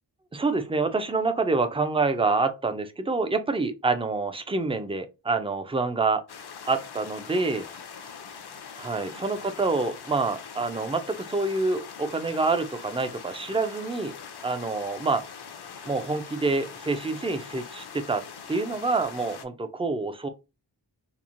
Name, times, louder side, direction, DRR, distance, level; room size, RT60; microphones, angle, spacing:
voice 1, 0.3-6.2 6.7-7.6 8.8-14.1 14.4-15.2 15.9-20.3, right 3 dB, 15° right, 0.3 m, -27 dB
sound 1, 6.3-19.5, left 6 dB, 60° left, 0.5 m, -42 dB
3.0 x 2.0 x 2.5 m
wide cardioid pair, 60°, 44 cm